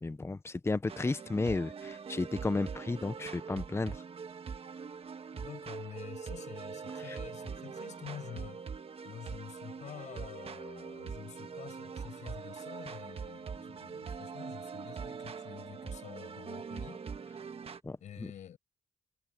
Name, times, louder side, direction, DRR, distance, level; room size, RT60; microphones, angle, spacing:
voice 1, 0.0-4.0 7.1-7.2 17.8-18.3, left 3 dB, 20° left, 0.7 m, -33 dB
sound 1, 0.9-17.8, right 6 dB, 55° right, 1.5 m, -43 dB
voice 2, 5.3-8.6 9.0-17.0 18.0-18.6, left 9 dB, 85° left, 7.4 m, -48 dB
cardioid pair, 65°, 12 cm